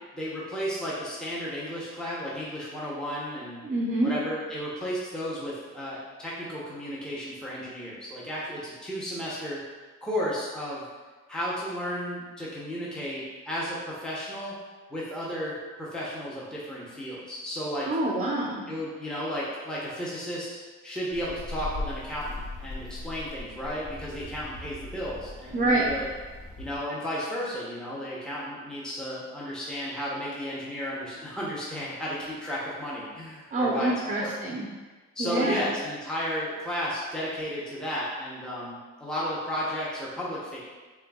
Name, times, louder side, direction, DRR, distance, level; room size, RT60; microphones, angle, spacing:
voice 1, 0.1-3.6 4.0-9.6 10.0-10.8 11.3-14.6 14.9-17.9 18.7-20.5 20.8-26.1 26.6-33.9 34.2-34.3 35.1-40.6, equal, 5° left, -6 dB, 0.8 m, -33 dB
voice 2, 3.6-4.1 17.9-18.6 25.5-25.9 33.5-34.7 35.2-35.7, right 2 dB, 30° right, -3 dB, 0.6 m, -26 dB
sound 1, 21.1-26.8, left 2 dB, 25° left, 1.3 m, -39 dB
4.4 x 3.2 x 2.3 m, 1.3 s
cardioid pair, 90°, 30 cm